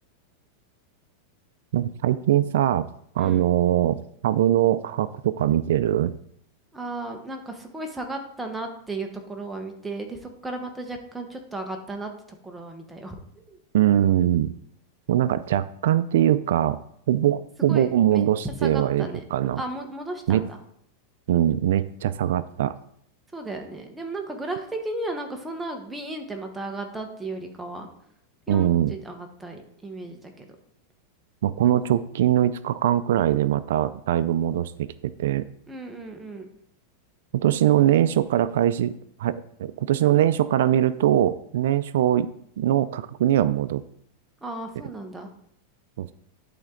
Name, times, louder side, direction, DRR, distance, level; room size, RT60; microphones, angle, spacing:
voice 1, 1.7-2.9 3.2-4.0 4.2-6.2 13.7-14.5 15.1-16.8 17.1-19.6 20.3-20.4 21.3-22.7 28.5-28.9 31.4-34.9 35.2-35.5 37.4-38.9 39.2-42.3 42.6-43.8 46.0-46.1, right 11 dB, 75° right, 15 dB, 0.4 m, -22 dB
voice 2, 6.7-12.1 12.4-13.1 13.5-13.6 17.7-19.2 19.6-20.6 23.3-27.9 28.5-30.5 35.7-36.5 44.4-45.3, right 2 dB, 10° right, 3 dB, 1.1 m, -35 dB
11.0 x 4.3 x 3.8 m, 0.68 s
supercardioid pair, 135°, 0 cm